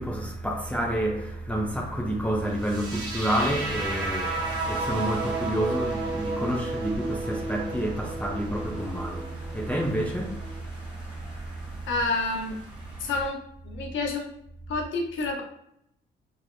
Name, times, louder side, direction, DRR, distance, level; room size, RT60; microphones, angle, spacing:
voice 1, 0.0-11.9, right 1 dB, 5° left, 0.5 m, -29 dB
sound 1, 2.6-10.6, right 3 dB, 90° right, 0.9 m, -33 dB
sound 2, 3.3-13.3, right 1 dB, 20° right, 1.2 m, -43 dB
voice 2, 11.9-12.6 13.0-13.4 13.6-14.3 14.7-15.4, left 3 dB, 70° left, 0.8 m, -28 dB
3.2 x 2.0 x 2.5 m
cardioid pair, 90°, 20 cm